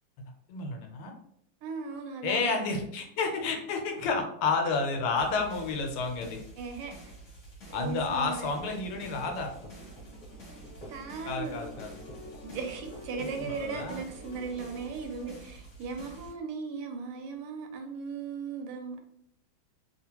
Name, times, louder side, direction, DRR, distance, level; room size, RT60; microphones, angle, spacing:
voice 1, 0.5-1.1 2.2-6.4 7.7-9.5 11.2-11.9 13.4-14.0, left 4 dB, 85° left, 3 dB, 1.6 m, -30 dB
voice 2, 1.6-2.7 6.6-6.9 7.7-8.5 10.9-11.6 12.4-19.0, right 5 dB, 85° right, 5 dB, 1.5 m, -37 dB
sound 1, 5.2-16.3, right 2 dB, 45° left, 1.1 m, -49 dB
sound 2, 8.3-11.1 11.6-14.7, equal, 25° left, 1.3 m, -51 dB
sound 3, 10.3-15.4, left 3 dB, 65° left, 1.2 m, -49 dB
3.6 x 2.4 x 2.8 m, 0.70 s
omnidirectional pair, 2.4 m